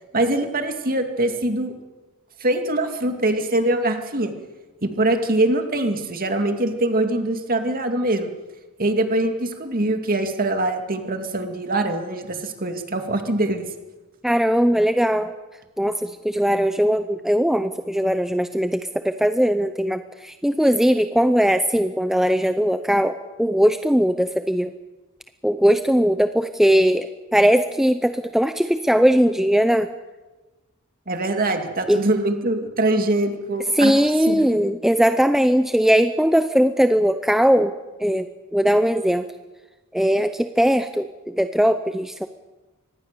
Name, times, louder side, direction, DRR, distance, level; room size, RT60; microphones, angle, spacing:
voice 1, 0.1-1.7 2.4-4.3 4.8-8.3 8.8-13.6 31.1-33.9 34.2-34.5, right 1 dB, 40° right, 6 dB, 2.4 m, -23 dB
voice 2, 14.2-15.3 15.8-24.7 25.4-29.9 31.9-32.0 33.8-37.7 38.0-38.3 38.5-39.3 39.9-42.3, equal, ahead, 9 dB, 0.6 m, -19 dB
24.5 x 19.5 x 6.9 m, 1.2 s
head